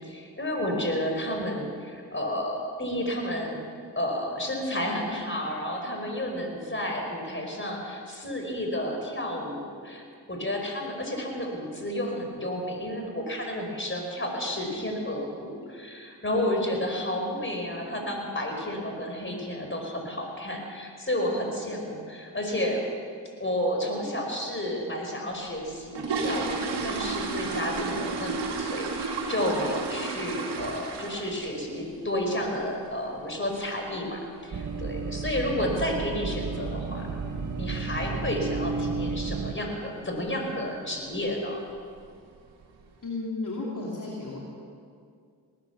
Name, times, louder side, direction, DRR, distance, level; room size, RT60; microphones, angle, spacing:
voice 1, 0.0-3.6 3.9-10.0 10.3-22.8 23.4-37.1 37.6-41.6, left 1 dB, 30° left, 1 dB, 4.9 m, -31 dB
sound 1, 25.6-31.5 31.8-32.1 32.4-32.5 32.9-33.0 33.4-33.6 33.9-34.0 34.6-34.7 34.9-35.1 35.6-35.9 36.2-36.3 36.7-36.9 37.2-37.3 37.7-37.8 38.4-38.7 39.1-39.4 39.8-39.9 40.3-40.4 41.1-41.3 41.7-42.2 42.6-42.7, right 4 dB, 80° right, 2.1 m, -32 dB
sound 2, 34.5-39.5, right 4 dB, 50° right, 1.2 m, -32 dB
voice 2, 43.0-44.4, left 3 dB, 50° left, -4 dB, 2.9 m, -33 dB
19.5 x 10.5 x 6.9 m, 2.2 s
supercardioid pair, 40°, 41 cm